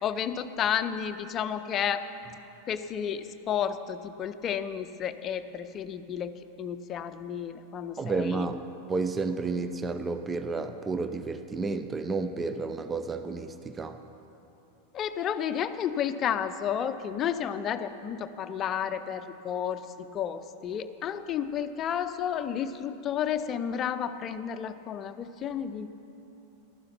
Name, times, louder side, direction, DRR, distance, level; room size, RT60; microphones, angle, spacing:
voice 1, 0.0-2.1 2.7-6.3 6.6-8.4 14.9-25.9, left 8 dB, 30° left, 11 dB, 0.6 m, -31 dB
voice 2, 8.0-8.6 8.9-14.0, right 4 dB, 15° right, 10 dB, 0.6 m, -31 dB
14.5 x 12.5 x 5.8 m, 2.9 s
figure-of-eight pair, 90°, 0 cm